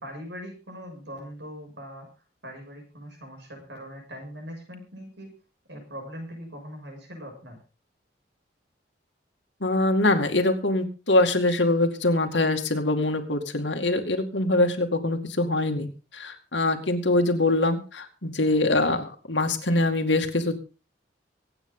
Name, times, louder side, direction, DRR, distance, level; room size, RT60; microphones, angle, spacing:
voice 1, 0.0-2.1 2.4-5.3 5.7-7.6, equal, 75° right, 2 dB, 6.8 m, -41 dB
voice 2, 9.6-15.9 16.1-20.5, left 2 dB, 85° left, 5 dB, 2.3 m, -23 dB
24.5 x 9.1 x 3.9 m, 0.33 s
head